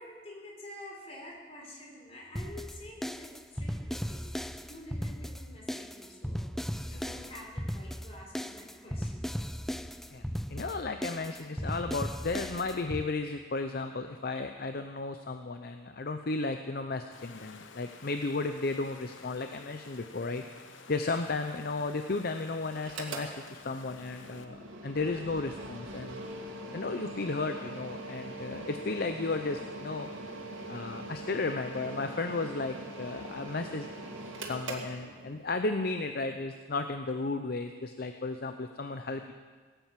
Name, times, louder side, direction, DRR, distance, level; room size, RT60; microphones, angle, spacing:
voice 1, 0.0-9.2, left 1 dB, 30° left, -1 dB, 3.9 m, -48 dB
sound 1, 2.4-13.0, equal, ahead, 0.3 m, -37 dB
voice 2, 10.5-20.4 20.9-26.3 26.7-30.1 30.7-33.9 34.5-39.3, left 3 dB, 50° left, 7 dB, 0.6 m, -34 dB
Water, 17.1-24.4, left 5 dB, 75° left, 1.0 m, -52 dB
Mechanical fan, 22.8-35.6, right 2 dB, 90° right, 2.3 m, -42 dB
17.5 x 9.0 x 7.5 m, 1.5 s
head